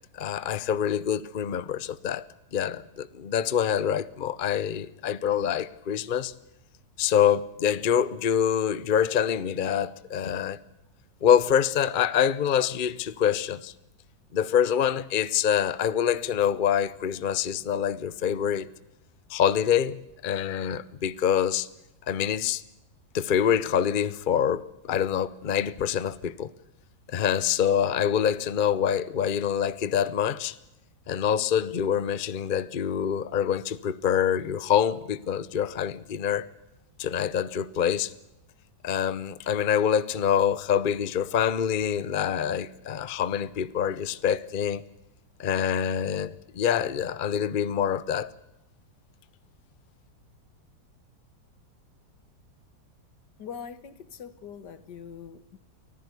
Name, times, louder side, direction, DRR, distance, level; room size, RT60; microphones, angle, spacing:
voice 1, 0.1-2.2 2.5-6.3 7.0-10.6 11.2-13.7 14.3-18.7 19.3-21.7 22.1-22.6 23.1-26.5 27.1-30.6 31.1-36.5 37.0-38.1 38.8-44.8 45.4-48.3, left 8 dB, 40° left, 0.7 m, -25 dB
voice 2, 53.4-55.6, left 7 dB, 80° left, 2.0 m, -42 dB
24.5 x 15.0 x 8.3 m
omnidirectional pair, 1.8 m